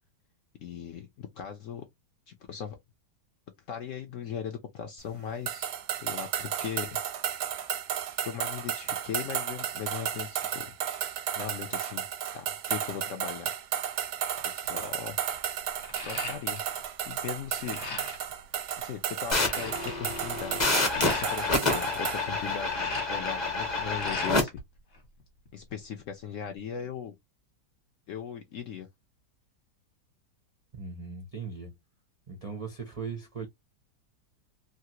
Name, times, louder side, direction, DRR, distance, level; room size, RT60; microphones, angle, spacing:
voice 1, 0.6-1.9 2.3-2.8 3.7-5.7 6.0-7.0 8.2-10.7 11.4-12.1 12.3-13.5 14.4-15.2 16.0-16.6 17.1-17.8 18.8-24.6 25.5-27.2 28.1-28.9, left 8 dB, 70° left, 0.7 m, -38 dB
sound 1, 5.5-22.2, right 10 dB, 85° right, 1.2 m, -33 dB
sound 2, 14.4-14.7 15.1-16.8 17.1-18.3 18.8-18.9 19.1-21.3 22.3-24.6 24.9-25.8, left 3 dB, 50° left, 1.1 m, -40 dB
sound 3, 19.3-24.4, left 3 dB, 20° left, 0.7 m, -28 dB
voice 2, 30.7-31.7 32.3-33.5, right 5 dB, 55° right, 0.4 m, -38 dB
3.2 x 2.4 x 2.8 m
omnidirectional pair, 1.8 m